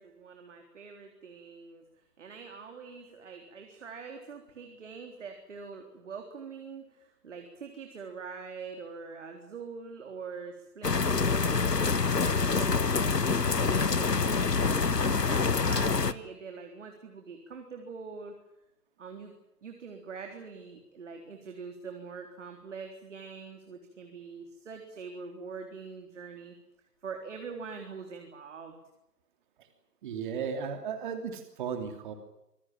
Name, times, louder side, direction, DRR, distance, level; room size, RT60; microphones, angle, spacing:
voice 1, 0.0-1.9 2.2-18.3 19.0-19.3 19.6-26.5 27.0-28.8, right 5 dB, 50° right, 4 dB, 3.8 m, -44 dB
sound 1, 10.8-16.1, left 5 dB, 80° left, 1.4 m, -26 dB
voice 2, 30.0-32.1, right 6 dB, 30° right, 7 dB, 3.0 m, -35 dB
26.0 x 18.0 x 9.0 m, 0.88 s
figure-of-eight pair, 140°, 47 cm